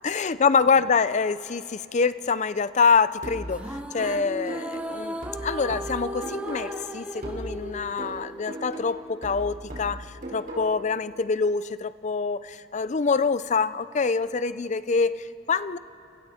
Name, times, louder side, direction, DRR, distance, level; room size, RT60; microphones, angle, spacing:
voice 1, 0.0-3.7 3.9-10.1 10.3-15.8, left 5 dB, 40° left, 15 dB, 0.5 m, -25 dB
sound 1, 3.2-6.9 7.2-10.9, right 1 dB, 50° right, 4.6 m, -38 dB
sound 2, 3.5-9.0, right 1 dB, 5° right, 0.9 m, -36 dB
30.0 x 29.5 x 4.3 m, 2.6 s
head